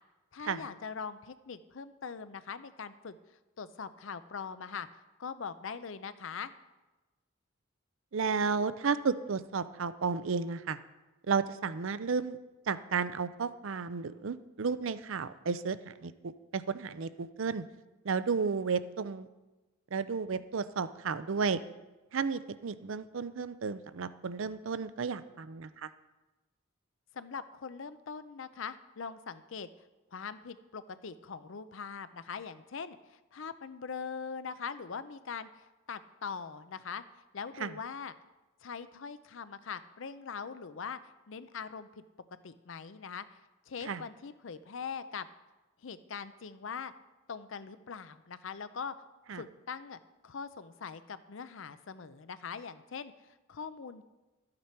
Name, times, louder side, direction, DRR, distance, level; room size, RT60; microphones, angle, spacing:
voice 1, 0.3-3.2 3.6-4.9 5.2-6.5 27.1-29.7 30.1-37.0 37.3-38.1 38.6-41.0 41.3-42.0 42.4-43.3 43.7-45.3 45.8-46.9 47.3-48.9 49.3-54.0, left 6 dB, 70° left, 13 dB, 0.6 m, -42 dB
voice 2, 8.1-10.8 11.3-12.4 12.7-16.1 16.5-17.6 18.0-19.3 19.9-21.6 22.1-25.9 37.6-37.7 43.9-44.0 49.3-49.4, right 5 dB, 70° right, 14 dB, 0.5 m, -33 dB
13.0 x 8.7 x 4.4 m, 1.1 s
head